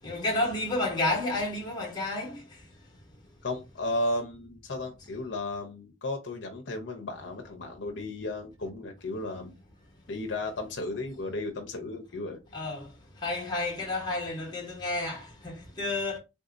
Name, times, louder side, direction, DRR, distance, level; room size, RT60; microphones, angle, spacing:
voice 1, 0.0-2.7 12.5-16.2, left 2 dB, 20° left, 1.0 m, -31 dB
voice 2, 3.4-9.5 10.1-12.4, left 2 dB, 65° left, 0.6 m, -34 dB
3.6 x 2.7 x 2.5 m
head